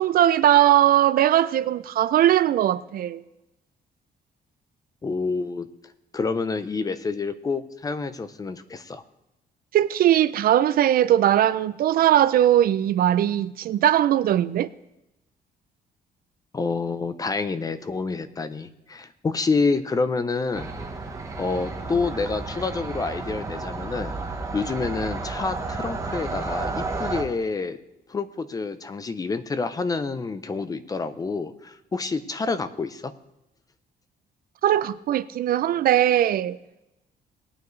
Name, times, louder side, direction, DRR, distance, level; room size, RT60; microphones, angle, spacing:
voice 1, 0.0-3.2 9.7-14.7 34.6-36.6, right 12 dB, 60° right, 0.4 m, -20 dB
voice 2, 5.0-5.7 6.1-9.0 16.5-20.7 21.4-24.1 24.5-27.8 28.1-33.1, left 4 dB, 20° left, 0.5 m, -28 dB
sound 1, 20.5-27.2, right 3 dB, 20° right, 1.0 m, -32 dB
19.0 x 9.3 x 3.2 m
cardioid pair, 170°, 17 cm